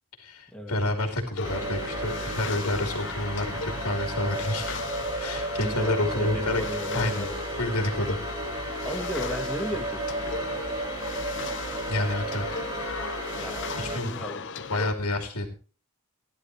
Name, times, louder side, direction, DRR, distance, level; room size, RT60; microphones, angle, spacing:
voice 1, 0.2-4.8 5.2-6.6 6.9-7.3 7.6-8.2 11.9-12.4 13.8-15.5, left 1 dB, 90° left, 4 dB, 2.8 m, -29 dB
sound 1, 1.4-14.9, left 5 dB, 55° left, 0.9 m, -38 dB
sound 2, 1.4-14.0, right 2 dB, 20° right, 2.6 m, -33 dB
voice 2, 6.2-7.4 8.8-10.3 13.4-14.4, left 1 dB, 5° left, 2 dB, 2.2 m, -35 dB
15.5 x 11.5 x 3.1 m, 0.36 s
head